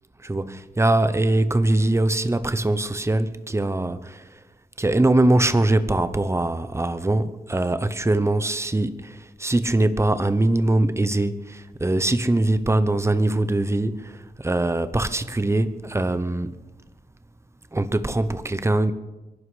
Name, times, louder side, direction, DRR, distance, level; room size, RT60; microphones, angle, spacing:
voice 1, 0.2-4.2 4.8-16.6 17.7-18.9, right 2 dB, 15° right, 0.9 m, -22 dB
24.0 x 11.5 x 5.0 m
wide cardioid pair, 120°, 17 cm